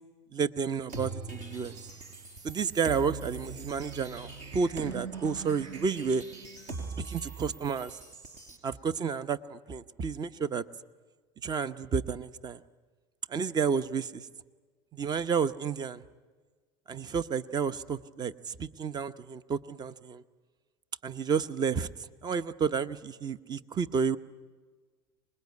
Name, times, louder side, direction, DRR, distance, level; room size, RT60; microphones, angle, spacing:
voice 1, 0.3-1.7 2.4-6.2 7.0-8.0 8.6-10.7 11.4-12.6 13.3-14.3 14.9-16.0 16.9-20.2 21.0-21.9 22.2-24.2, right 6 dB, 30° right, 15 dB, 0.9 m, -31 dB
sound 1, 0.9-8.6, right 4 dB, 60° right, 4.6 m, -41 dB
25.5 x 21.0 x 9.6 m, 1.4 s
supercardioid pair, 105°, 14 cm